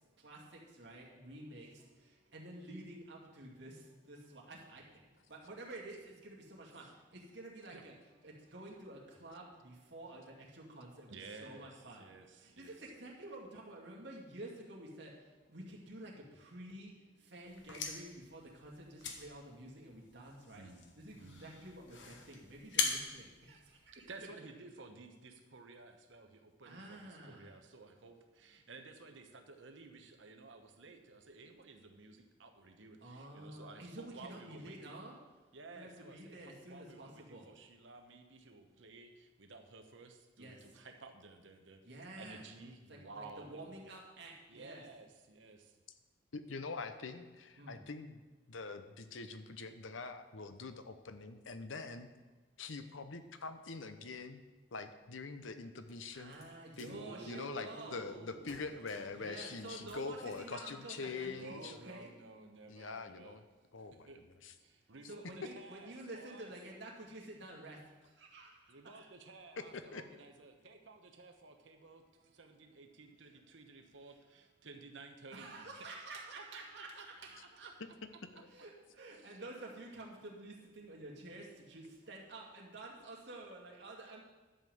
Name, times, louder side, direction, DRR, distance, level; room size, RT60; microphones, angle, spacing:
voice 1, 0.0-7.9 8.2-24.3 26.6-27.6 33.0-35.2 35.7-37.5 40.4-40.7 41.8-42.4 42.9-44.8 47.6-47.8 56.1-58.1 59.1-62.1 63.8-64.1 64.8-69.1 72.3-72.4 74.1-74.2 75.3-77.7 78.5-84.2, right 2 dB, 65° right, -3 dB, 2.4 m, -50 dB
voice 2, 11.1-12.8 20.5-21.5 23.5-23.6 23.9-34.9 35.5-41.8 42.1-43.8 44.5-45.8 56.9-59.3 59.6-60.1 61.3-63.4 63.9-64.2 64.6-66.5 68.7-75.7 76.4-77.7 79.2-79.4, right 3 dB, 80° right, 5 dB, 1.1 m, -54 dB
sound 1, 17.4-24.3, left 5 dB, 70° left, 1.3 m, -42 dB
voice 3, 46.3-48.2 48.5-52.1 52.6-54.4 54.7-56.3 56.8-61.7 62.7-63.4 63.7-64.1 64.4-64.5 69.6-70.0 78.3-78.5, left 4 dB, 85° left, 9 dB, 0.8 m, -44 dB
sound 2, 55.9-57.0 58.0-58.2 58.5-59.2 59.6-60.5, left 1 dB, 55° left, 2.7 m, -60 dB
11.0 x 5.5 x 7.8 m, 1.2 s
head